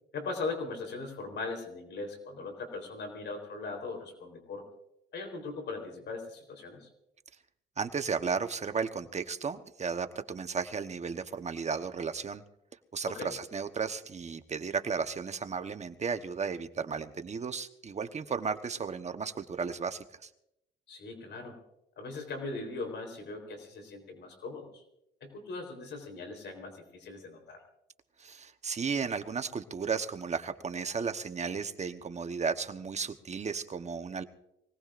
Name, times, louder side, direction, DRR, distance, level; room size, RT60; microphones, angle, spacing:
voice 1, 0.1-4.6 5.1-6.9 13.1-13.3 20.9-21.6 22.0-24.7 25.2-27.6, left 3 dB, 65° left, 4 dB, 3.9 m, -39 dB
voice 2, 7.8-12.4 12.9-20.3 28.2-34.2, right 5 dB, 35° right, 8 dB, 1.1 m, -34 dB
24.0 x 18.0 x 2.5 m, 0.81 s
cardioid pair, 90°, 20 cm